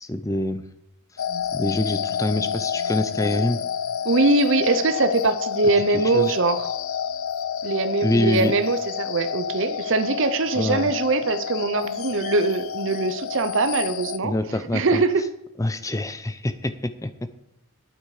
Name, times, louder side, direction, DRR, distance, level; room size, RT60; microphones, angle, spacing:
voice 1, 0.0-0.6 1.5-3.6 5.9-6.3 8.0-8.5 10.5-10.9 14.2-15.0 15.6-17.3, left 1 dB, 15° left, 12 dB, 0.6 m, -25 dB
sound 1, 1.2-14.2, left 8 dB, 70° left, 0.5 m, -29 dB
voice 2, 4.0-6.7 7.6-14.3 14.7-15.2, right 3 dB, 60° right, 12 dB, 0.7 m, -22 dB
12.0 x 8.3 x 4.9 m, 0.83 s
head